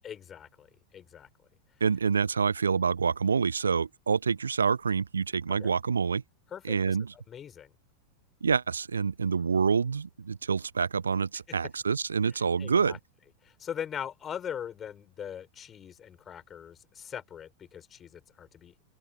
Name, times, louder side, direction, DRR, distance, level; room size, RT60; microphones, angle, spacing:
voice 1, 0.0-0.7 0.9-1.3 5.6-5.7 6.5-7.0 7.3-7.7 12.6-13.0 13.4-18.7, left 9 dB, 25° left, 4.9 m, -41 dB
voice 2, 1.8-6.2 6.6-7.1 8.4-13.0, right 5 dB, 75° right, 0.7 m, -27 dB
open air
figure-of-eight pair, 90°, 0 cm